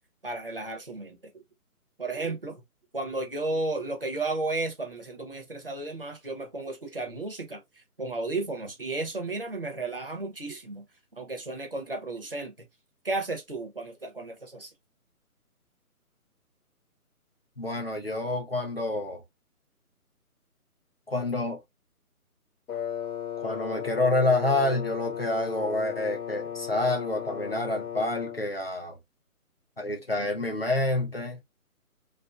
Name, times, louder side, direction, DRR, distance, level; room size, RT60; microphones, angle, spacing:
voice 1, 0.2-1.4 2.0-2.6 2.9-10.8 11.2-12.7 13.0-14.7, right 2 dB, 40° right, 0.4 m, -33 dB
voice 2, 17.6-19.2 21.1-21.6 23.4-29.0 29.8-31.4, left 2 dB, 45° left, 0.5 m, -28 dB
Wind instrument woodwind instrument, 22.7-28.5, left 9 dB, 90° left, 0.8 m, -35 dB
2.5 x 2.2 x 2.2 m
hypercardioid pair, 175°, 44 cm